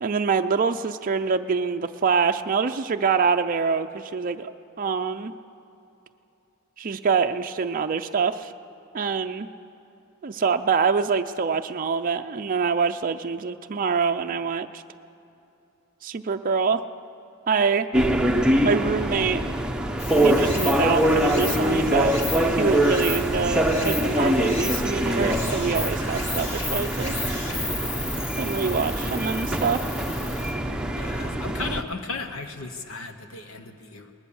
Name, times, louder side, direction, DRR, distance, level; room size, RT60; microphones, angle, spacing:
voice 1, 0.0-4.5 4.8-5.3 6.8-8.5 8.9-9.5 10.2-14.8 16.0-16.8 17.5-17.9 18.6-19.4 20.2-22.1 22.5-27.1 28.4-29.8, right 5 dB, 40° right, 6 dB, 0.5 m, -25 dB
sound 1, 17.9-31.8, right 1 dB, 5° right, 0.7 m, -24 dB
Stream, 20.0-30.5, left 2 dB, 30° left, 3.0 m, -34 dB
voice 2, 31.0-34.1, left 3 dB, 70° left, 7 dB, 1.0 m, -35 dB
19.5 x 19.5 x 7.1 m, 2.8 s
head